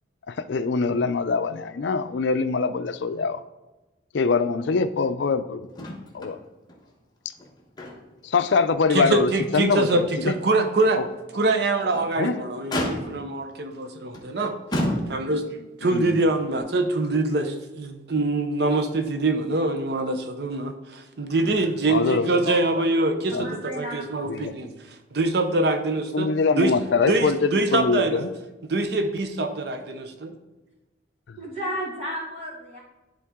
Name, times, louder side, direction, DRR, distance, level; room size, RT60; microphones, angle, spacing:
voice 1, 0.3-3.4 4.1-5.9 6.1-6.4 8.2-10.3 11.0-11.1 12.2-12.4 15.9-16.2 21.4-21.6 21.9-22.8 23.3-23.4 24.3-24.6 26.1-28.3 31.3-31.4, left 4 dB, 70° left, 12 dB, 0.4 m, -24 dB
Motor vehicle (road), 5.7-6.4 6.7-6.8 7.3-8.3 8.7-8.8 9.4-9.5 11.7-12.1 12.7-13.4 14.1-14.3 14.7-15.5 16.6-16.7, left 1 dB, 20° left, 1.0 m, -30 dB
voice 2, 8.9-11.0 11.3-14.6 15.1-23.5 23.8-24.7 25.1-26.3 26.6-26.7 27.1-28.2 28.6-30.3, right 2 dB, 60° right, 7 dB, 0.6 m, -24 dB
voice 3, 23.3-24.3 31.4-32.8, equal, 35° right, -5 dB, 2.1 m, -33 dB
11.0 x 3.8 x 3.6 m, 1.1 s
head